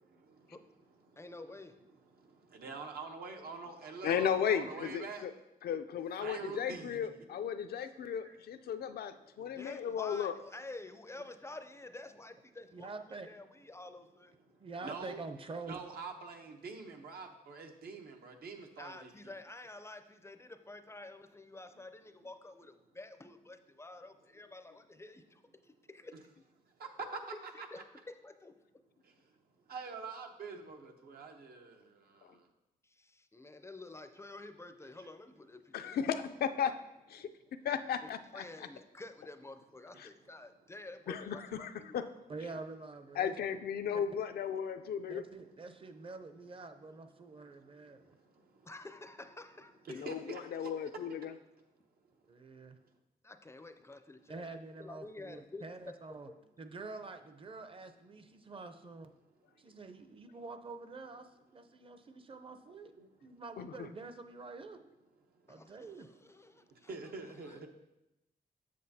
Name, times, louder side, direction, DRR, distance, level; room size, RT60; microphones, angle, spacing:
voice 1, 1.2-1.8 9.4-14.3 18.8-26.1 27.3-27.8 28.1-28.6 32.8-36.0 38.0-42.1 48.7-50.0 53.2-54.5 54.8-55.6 56.3-56.4 65.5-66.9 67.4-67.6, left 2 dB, 15° left, 9 dB, 0.4 m, -50 dB
voice 2, 2.5-5.2 6.2-7.1 8.2-8.4 14.8-15.2 15.7-19.1 26.8-26.9 27.4-27.8 29.7-31.8 49.9-50.4 66.9-67.7, right 4 dB, 80° right, 3 dB, 0.9 m, -45 dB
voice 3, 4.0-5.3 5.6-10.4 35.7-36.8 37.7-38.4 41.1-42.0 43.2-45.2 49.9-51.3 63.6-63.9, left 8 dB, 80° left, 9 dB, 0.4 m, -35 dB
voice 4, 12.7-13.3 14.6-15.8 42.3-43.3 43.9-44.0 45.1-48.2 52.3-52.8 54.3-56.3 56.6-59.1 59.6-62.9 63.2-64.8 65.5-66.1, right 3 dB, 35° right, 8 dB, 0.6 m, -47 dB
7.6 x 7.0 x 2.7 m, 0.93 s
cardioid pair, 105°, 16 cm